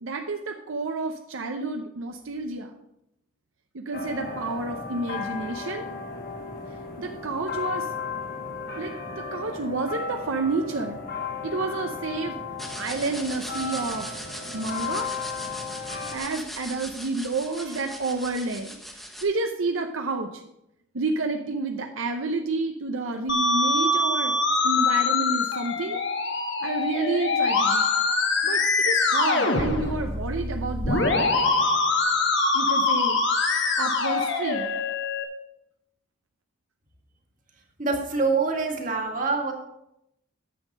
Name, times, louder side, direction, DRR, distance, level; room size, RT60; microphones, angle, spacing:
voice 1, 0.0-2.7 3.7-5.9 7.0-7.9 8.8-11.0 11.4-12.4 12.8-14.1 14.5-15.1 16.1-18.8 19.2-20.3 20.9-24.3 24.6-26.0 26.6-27.9 28.4-31.3 32.5-33.2 33.8-34.7, right 3 dB, 75° right, 4 dB, 0.7 m, -29 dB
Ambience and Hourly Bell Chimes - UA, 3.9-16.2, left 5 dB, 45° left, 1.4 m, -35 dB
sound 1, 12.6-19.2, equal, ahead, 1.1 m, -40 dB
Musical instrument, 23.3-35.2, left 3 dB, 60° left, 1.3 m, -24 dB
voice 2, 37.8-39.5, right 4 dB, 40° right, 1 dB, 1.9 m, -25 dB
9.5 x 7.3 x 5.3 m, 0.82 s
head